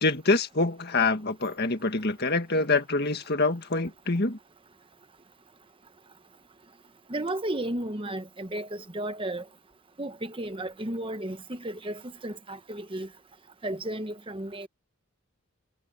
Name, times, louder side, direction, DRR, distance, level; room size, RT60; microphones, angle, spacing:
voice 1, 0.0-4.4, left 3 dB, 45° left, 1.9 m, -25 dB
voice 2, 7.1-9.4 10.0-13.1 13.6-14.7, right 1 dB, 25° right, 1.1 m, -33 dB
head